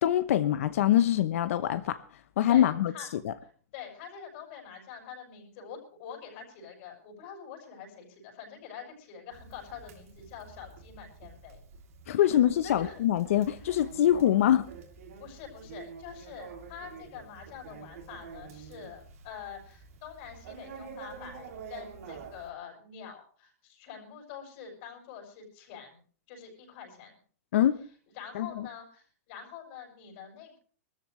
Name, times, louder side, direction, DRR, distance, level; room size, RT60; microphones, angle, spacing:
voice 1, 0.0-2.0 2.4-2.9 3.2-3.3 12.1-14.6 27.5-27.8 28.3-28.7, left 11 dB, 65° left, 12 dB, 0.9 m, -24 dB
voice 2, 2.5-3.1 3.7-11.6 12.1-12.2 12.6-13.0 13.5-13.8 15.2-26.0 26.3-27.1 28.2-30.6, left 7 dB, 50° left, 1 dB, 6.6 m, -45 dB
Conversation, 9.3-22.5, right 5 dB, 75° right, 3.2 m, -48 dB
22.5 x 13.5 x 3.2 m, 0.42 s
supercardioid pair, 150°, 8 cm